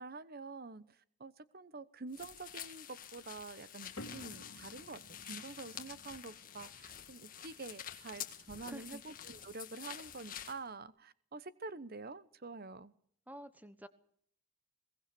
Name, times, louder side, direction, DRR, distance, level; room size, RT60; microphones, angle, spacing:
voice 1, 0.0-5.0 5.3-12.9, right 3 dB, 45° right, 16 dB, 0.9 m, -47 dB
sound 1, 2.1-10.6, left 9 dB, 40° left, 1.9 m, -48 dB
sound 2, 4.0-10.7, left 1 dB, 80° left, 2.3 m, -57 dB
voice 2, 8.7-9.0 13.3-13.9, right 1 dB, 10° right, 12 dB, 1.1 m, -49 dB
22.0 x 18.5 x 6.9 m, 0.66 s
head